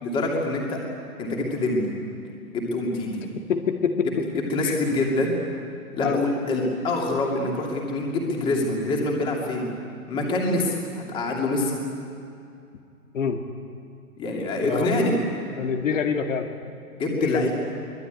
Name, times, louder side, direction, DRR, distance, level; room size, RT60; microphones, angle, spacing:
voice 1, 0.0-0.8 1.2-1.9 2.5-3.2 4.5-5.4 5.9-9.7 10.1-11.8 14.2-15.1 17.0-17.5, left 2 dB, 10° left, -1 dB, 2.7 m, -25 dB
voice 2, 3.5-4.8 6.0-6.2 13.1-13.4 14.6-15.1 15.6-16.5 17.1-17.5, left 6 dB, 55° left, 4 dB, 2.0 m, -26 dB
24.0 x 21.0 x 9.4 m, 2.5 s
hypercardioid pair, 170°, 45 cm